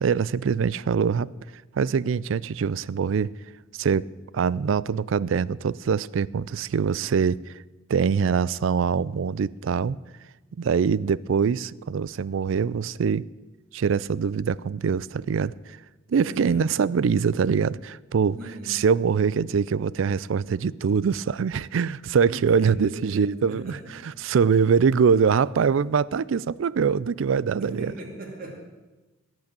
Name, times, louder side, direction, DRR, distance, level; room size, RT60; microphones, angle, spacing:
voice 1, 0.0-1.3 1.7-3.3 3.7-4.1 4.3-7.6 7.9-10.0 10.6-13.3 13.7-15.8 16.1-18.4 18.7-27.9, right 6 dB, 70° right, 21 dB, 0.4 m, -23 dB
voice 2, 16.1-16.9 18.3-18.7 22.3-23.9 27.6-28.5, right 1 dB, 45° right, 0 dB, 2.9 m, -38 dB
17.0 x 6.2 x 8.8 m, 1.2 s
head